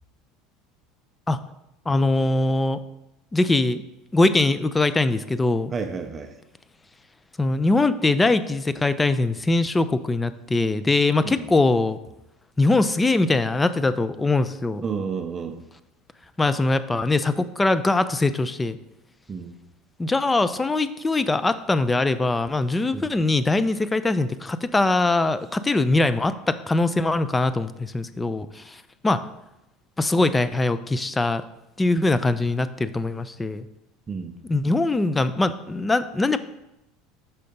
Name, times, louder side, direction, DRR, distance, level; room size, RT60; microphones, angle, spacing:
voice 1, 1.9-2.8 3.3-3.8 4.1-5.7 7.4-12.0 12.6-14.8 16.4-18.8 20.0-29.3 30.0-31.4 31.8-33.7 34.4-36.4, left 2 dB, 15° left, 13 dB, 0.4 m, -22 dB
voice 2, 5.7-6.3 11.2-11.5 14.8-15.6 19.3-19.6 22.9-23.1 34.1-34.4, right 5 dB, 25° right, 6 dB, 0.6 m, -31 dB
5.6 x 4.1 x 5.2 m, 0.91 s
supercardioid pair, 105°, 0 cm